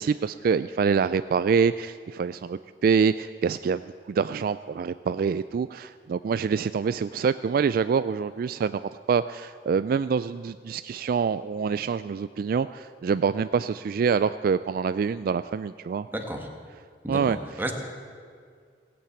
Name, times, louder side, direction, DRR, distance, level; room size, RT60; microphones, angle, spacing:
voice 1, 0.0-3.8 4.1-16.1 17.1-17.4, right 6 dB, 55° right, 13 dB, 0.3 m, -26 dB
voice 2, 16.1-16.5 17.0-17.7, right 1 dB, 10° right, 2 dB, 1.6 m, -32 dB
17.0 x 8.6 x 8.3 m, 2.1 s
head